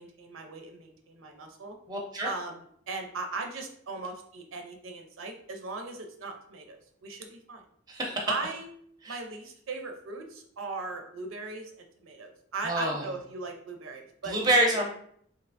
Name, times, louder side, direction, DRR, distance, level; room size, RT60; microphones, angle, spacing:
voice 1, 0.0-1.8 2.2-7.6 8.3-8.7 9.1-11.7 12.0-14.4 14.7-14.8, right 3 dB, 85° right, 4 dB, 0.5 m, -38 dB
voice 2, 1.9-2.3 7.9-8.3 9.0-9.2 12.6-13.0 14.3-14.9, right 1 dB, 20° right, 0 dB, 0.5 m, -26 dB
3.3 x 2.8 x 2.5 m, 0.65 s
head